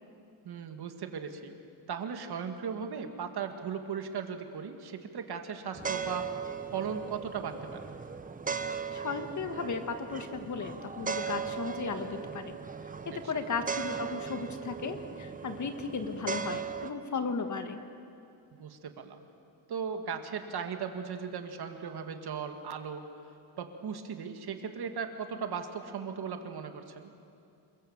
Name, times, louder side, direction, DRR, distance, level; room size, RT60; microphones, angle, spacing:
voice 1, 0.4-1.5 1.9-6.3 6.7-7.9 13.1-13.2 18.5-19.2 19.7-23.0 23.6-27.1, right 6 dB, 60° right, 6 dB, 2.1 m, -37 dB
sound 1, 5.7-16.9, right 6 dB, 20° right, 0.8 m, -38 dB
voice 2, 8.9-12.6 13.0-17.8, left 4 dB, 40° left, 7 dB, 1.7 m, -35 dB
28.5 x 23.0 x 7.3 m, 2.5 s
wide cardioid pair, 155°, 44 cm